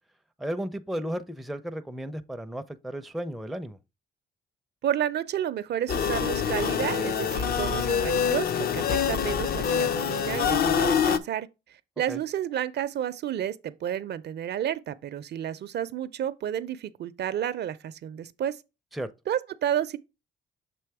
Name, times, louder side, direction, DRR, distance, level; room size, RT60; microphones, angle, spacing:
voice 1, 0.4-3.8 12.1-12.2 18.9-19.1, right 1 dB, ahead, 0.5 m, -34 dB
voice 2, 4.8-11.5 12.0-18.6 19.3-20.0, right 10 dB, 55° right, 0.5 m, -31 dB
sound 1, 5.9-11.2, left 7 dB, 50° left, 0.6 m, -25 dB
6.9 x 3.0 x 4.7 m
cardioid pair, 90°, 20 cm